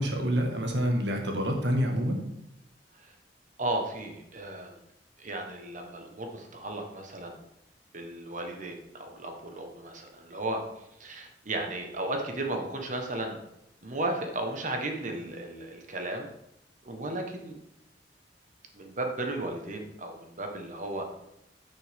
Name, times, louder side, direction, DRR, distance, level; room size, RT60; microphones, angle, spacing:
voice 1, 0.0-2.2, equal, 70° right, 2 dB, 1.5 m, -27 dB
voice 2, 3.6-4.7 5.2-7.4 7.9-10.6 11.0-13.4 13.8-16.3 16.8-17.5 18.7-21.0, right 2 dB, 45° right, 3 dB, 1.2 m, -34 dB
9.9 x 5.8 x 3.6 m, 0.82 s
head